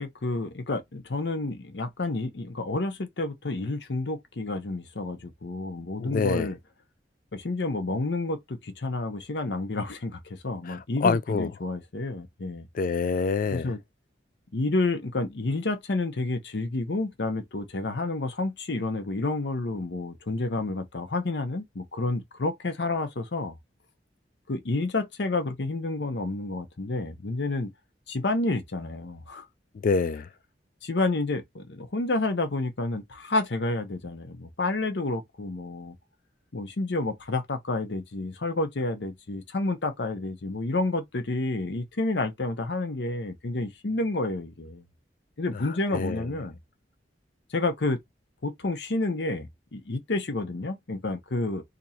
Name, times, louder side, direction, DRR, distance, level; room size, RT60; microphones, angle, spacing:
voice 1, 0.0-6.6 7.3-12.7 13.5-13.8 14.5-23.5 24.5-27.7 28.1-29.5 30.8-36.0 36.5-44.8 45.4-46.6 47.5-48.0 48.4-51.6, left 2 dB, 70° left, 0.8 m, -30 dB
voice 2, 6.0-6.5 10.7-11.5 12.7-13.7 29.8-30.3 45.9-46.2, left 4 dB, 50° left, 0.3 m, -26 dB
2.9 x 2.6 x 4.2 m
head